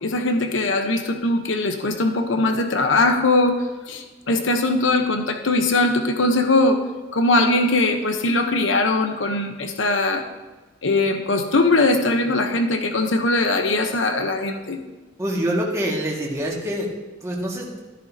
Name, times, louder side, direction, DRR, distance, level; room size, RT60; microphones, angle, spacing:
voice 1, 0.0-3.6 3.9-6.8 7.1-10.2 10.8-14.8, left 2 dB, 90° left, 5 dB, 1.0 m, -20 dB
voice 2, 15.2-16.9 17.2-17.8, equal, 15° right, -3 dB, 1.9 m, -25 dB
13.5 x 10.5 x 2.8 m, 1.2 s
head